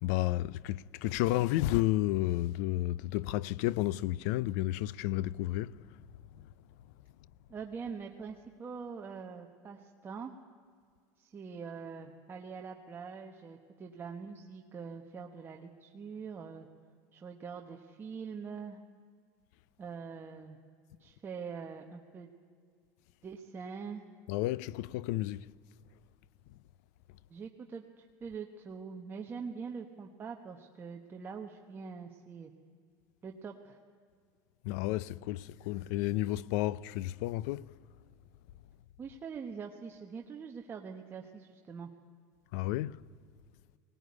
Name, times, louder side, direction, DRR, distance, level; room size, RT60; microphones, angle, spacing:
voice 1, 0.0-6.0 24.3-25.5 34.6-37.7 42.5-43.0, left 16 dB, 75° left, 0.5 m, -32 dB
voice 2, 7.5-10.3 11.2-16.7 17.1-18.8 19.8-20.6 21.0-22.3 23.2-24.0 27.3-32.5 33.2-33.8 39.0-41.9, right 5 dB, 25° right, 1.2 m, -44 dB
20.0 x 18.5 x 9.6 m
supercardioid pair, 135°, 9 cm